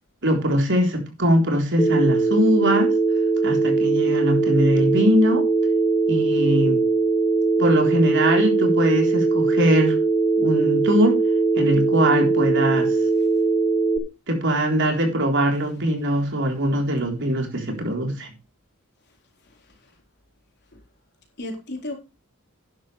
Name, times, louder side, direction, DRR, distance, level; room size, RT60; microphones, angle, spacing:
voice 1, 0.2-2.9 3.4-5.4 6.1-6.8 7.6-10.0 10.4-11.2 11.6-13.0 14.3-18.3, equal, 55° right, 3 dB, 3.7 m, -21 dB
Telephone, 1.8-14.0, right 3 dB, 20° left, 1.8 m, -20 dB
voice 2, 19.4-19.9 20.7-20.8 21.4-21.9, left 1 dB, 50° left, 2 dB, 4.2 m, -35 dB
12.5 x 10.0 x 3.3 m, 0.29 s
head